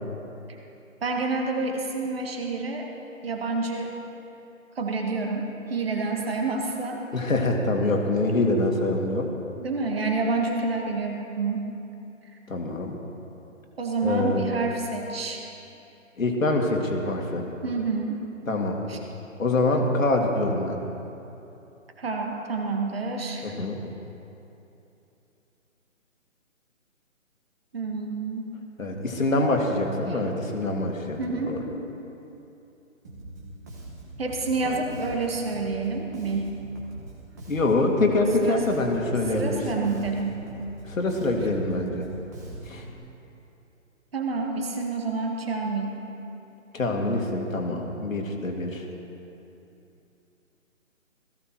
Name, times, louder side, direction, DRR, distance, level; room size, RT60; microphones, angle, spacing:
voice 1, 1.0-2.9 3.2-3.9 4.8-7.0 9.6-11.7 13.8-15.4 17.6-18.2 18.9-19.0 22.0-23.5 27.7-28.5 30.1-30.2 31.2-31.6 34.2-36.5 38.4-38.8 39.3-40.4 44.1-46.0, right 3 dB, 45° right, 2 dB, 1.8 m, -28 dB
voice 2, 7.1-9.3 12.5-12.9 14.0-14.4 16.2-17.4 18.5-18.8 19.4-20.8 23.4-23.8 28.8-31.6 34.6-34.8 37.5-39.9 40.9-42.0 42.7-42.8 46.7-48.8, left 2 dB, 80° left, 1 dB, 2.4 m, -25 dB
Bass guitar, 33.0-42.9, right 1 dB, 15° right, 1.1 m, -42 dB
17.0 x 15.0 x 4.6 m, 2.9 s
hypercardioid pair, 170°, 40 cm